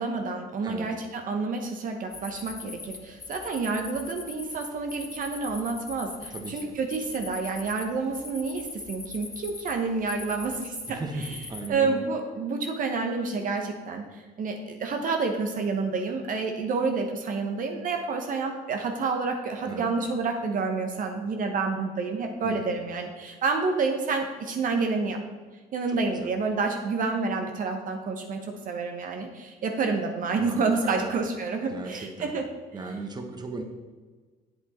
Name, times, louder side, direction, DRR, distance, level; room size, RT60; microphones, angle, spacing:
voice 1, 0.0-11.4 11.7-14.0 14.4-25.2 25.7-32.4, right 4 dB, 55° right, 4 dB, 1.1 m, -29 dB
sound 1, 2.1-11.7, left 4 dB, 20° left, 0.8 m, -42 dB
voice 2, 6.3-6.7 10.9-12.0 19.7-19.9 22.4-22.7 25.9-26.3 30.4-31.2 31.7-32.3 32.7-33.6, right 3 dB, 25° right, 4 dB, 1.2 m, -37 dB
8.2 x 7.9 x 4.2 m, 1.4 s
cardioid pair, 110°, 17 cm